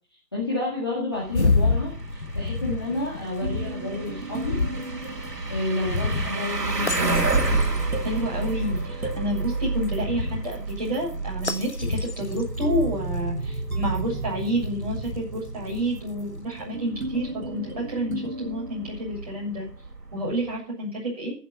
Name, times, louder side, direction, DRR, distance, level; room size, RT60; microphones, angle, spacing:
voice 1, 0.3-4.6 5.5-7.3, left 2 dB, 15° left, -6 dB, 1.9 m, -30 dB
sound 1, 1.1-20.6, right 3 dB, 80° right, 3.2 m, -32 dB
sound 2, 1.3-16.4, left 3 dB, 45° left, 1.0 m, -30 dB
sound 3, 3.4-6.0 7.6-10.6 12.1-19.4, right 3 dB, 60° right, 2.4 m, -34 dB
voice 2, 8.0-19.7 20.1-21.3, equal, 25° right, -4 dB, 7.1 m, -29 dB
15.0 x 7.5 x 7.9 m, 0.40 s
figure-of-eight pair, 180°, 48 cm